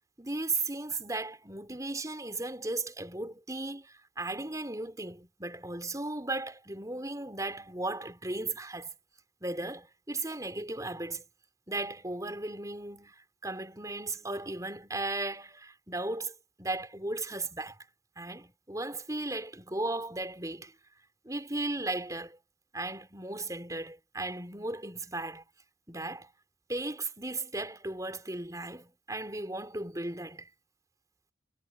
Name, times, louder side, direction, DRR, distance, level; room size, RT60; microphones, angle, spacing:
voice 1, 0.2-8.9 9.4-11.2 11.7-13.1 13.4-17.8 18.2-20.7 21.2-22.4 22.7-25.4 25.9-26.3 26.7-30.5, right 2 dB, 20° right, 4.9 m, -36 dB
head